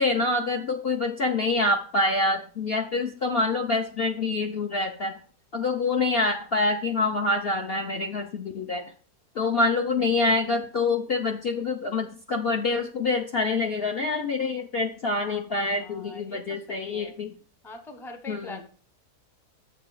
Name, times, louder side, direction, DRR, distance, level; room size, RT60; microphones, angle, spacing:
voice 1, 0.0-5.2 5.5-8.8 9.4-17.3 18.3-18.6, left 3 dB, 50° left, 3 dB, 0.7 m, -26 dB
voice 2, 15.3-17.1 17.6-18.6, left 2 dB, ahead, 7 dB, 0.6 m, -43 dB
7.2 x 6.9 x 4.8 m, 0.41 s
omnidirectional pair, 1.7 m